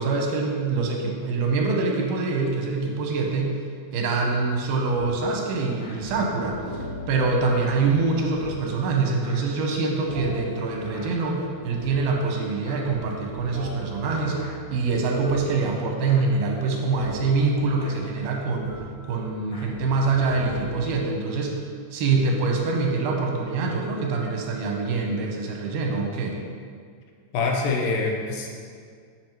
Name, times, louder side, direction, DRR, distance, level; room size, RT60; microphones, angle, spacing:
voice 1, 0.0-3.6 3.9-6.8 7.1-14.4 14.7-18.7 19.1-21.6 21.9-26.4, right 4 dB, 85° right, 1 dB, 2.8 m, -25 dB
sound 1, 4.5-20.9, equal, 30° left, 1.6 m, -40 dB
voice 2, 27.3-28.5, left 3 dB, 80° left, 1 dB, 2.5 m, -25 dB
7.3 x 5.9 x 4.5 m, 2.1 s
omnidirectional pair, 4.2 m